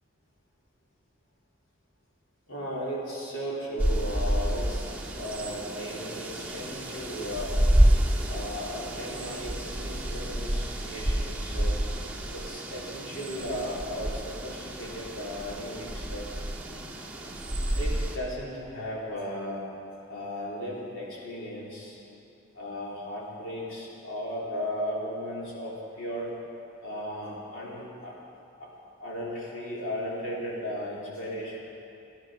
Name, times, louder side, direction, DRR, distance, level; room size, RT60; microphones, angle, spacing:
voice 1, 2.5-7.5 8.2-11.8 12.3-16.3 17.7-19.6 20.1-22.0 22.5-26.3 26.8-28.1 28.6-28.7 29.0-31.6, equal, 75° left, -6 dB, 3.6 m, -36 dB
sound 1, 3.8-18.2, right 1 dB, 10° right, 1.5 m, -29 dB
15.0 x 11.0 x 6.3 m, 2.7 s
head